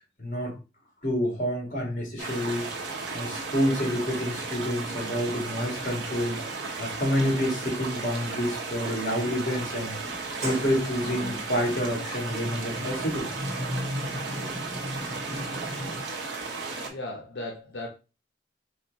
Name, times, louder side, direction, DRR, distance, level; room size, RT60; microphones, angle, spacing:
voice 1, 0.2-0.5 1.0-2.7 3.1-6.4 6.8-10.0 10.4-13.3, equal, 40° left, -1 dB, 1.8 m, -28 dB
sound 1, 2.2-16.9, right 3 dB, 80° right, 1.0 m, -35 dB
Sliding door, 10.0-16.0, equal, 40° right, 1.0 m, -37 dB
voice 2, 16.9-17.9, left 2 dB, 75° left, 2 dB, 0.7 m, -36 dB
4.2 x 2.5 x 4.0 m, 0.31 s
head